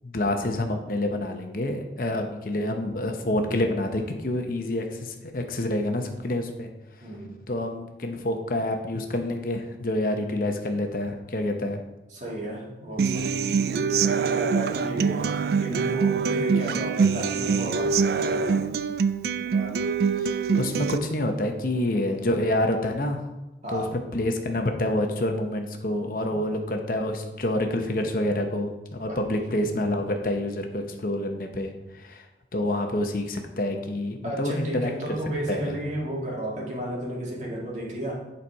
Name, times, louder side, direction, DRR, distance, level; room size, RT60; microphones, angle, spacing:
voice 1, 0.0-6.7 7.5-11.8 20.2-23.2 23.7-23.8 24.1-32.3 32.5-35.2 35.5-35.7, left 1 dB, 50° left, 4 dB, 0.8 m, -27 dB
voice 2, 7.0-7.4 12.1-13.4 13.7-18.7 19.5-19.8 23.6-24.0 29.1-29.7 34.2-38.2, equal, 40° right, -3 dB, 1.9 m, -33 dB
Human voice / Acoustic guitar, 13.0-21.0, right 5 dB, 55° right, 0.3 m, -24 dB
10.5 x 4.2 x 4.6 m, 1.0 s
head